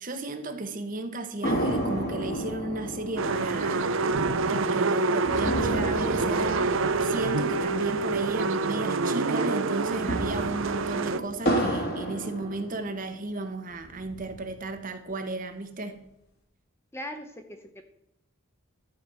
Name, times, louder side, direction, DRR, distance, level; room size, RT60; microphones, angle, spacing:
voice 1, 0.0-4.0 4.5-16.0, right 2 dB, 35° right, 1.0 m, -34 dB
sound 1, 1.4-9.0 9.3-9.4 9.8-13.2 13.7-14.7, right 1 dB, 45° left, 2.3 m, -32 dB
sound 2, 3.2-11.2, right 3 dB, 60° right, 0.6 m, -27 dB
voice 2, 16.9-17.8, equal, 10° left, 0.7 m, -39 dB
12.5 x 5.2 x 7.5 m
head